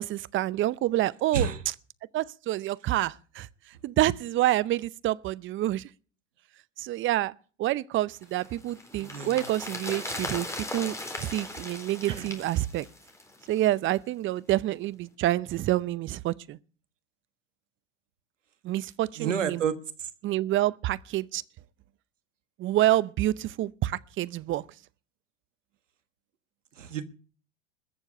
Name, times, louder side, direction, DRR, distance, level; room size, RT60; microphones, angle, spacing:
voice 1, 0.0-1.5 2.1-3.5 3.8-5.9 6.8-7.3 7.6-10.5 10.7-10.9 11.2-12.9 13.5-16.6 18.6-19.6 20.2-21.4 22.6-24.6, right 15 dB, 35° right, 0.7 m, -27 dB
sound 1, 8.2-13.6 13.9-14.0, left 2 dB, 10° left, 3.9 m, -38 dB
voice 2, 9.0-9.4 12.1-12.3 19.2-20.1 26.8-27.0, right 7 dB, 90° right, 1.4 m, -30 dB
21.0 x 7.2 x 6.7 m
hypercardioid pair, 95°, 36 cm